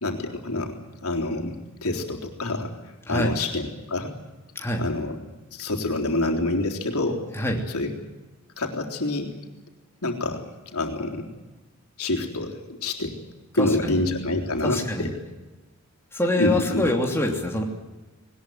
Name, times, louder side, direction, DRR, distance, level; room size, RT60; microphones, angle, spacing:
voice 1, 0.0-1.6 1.8-2.7 3.1-4.1 4.8-5.2 5.5-7.2 7.7-7.9 8.6-9.3 10.0-10.4 10.7-11.3 12.0-13.2 13.5-15.1 16.4-16.9, left 2 dB, 85° left, 2 dB, 3.8 m, -27 dB
voice 2, 13.5-14.0 14.6-15.1 16.1-17.6, left 1 dB, 10° left, 0 dB, 3.0 m, -25 dB
20.5 x 20.0 x 9.3 m, 1.1 s
head